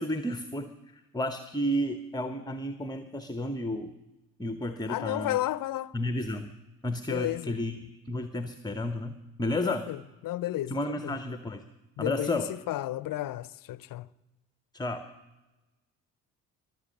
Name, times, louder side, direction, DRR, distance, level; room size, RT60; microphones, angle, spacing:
voice 1, 0.0-3.9 4.4-5.4 5.9-6.5 6.8-9.9 10.7-11.6 12.0-12.5 14.7-15.0, left 1 dB, 10° left, 0.9 m, -32 dB
voice 2, 4.9-5.9 7.1-7.5 9.6-10.8 11.0-11.1 12.0-14.1, left 15 dB, 50° left, 0.6 m, -32 dB
22.5 x 7.5 x 6.5 m
hypercardioid pair, 50°, 42 cm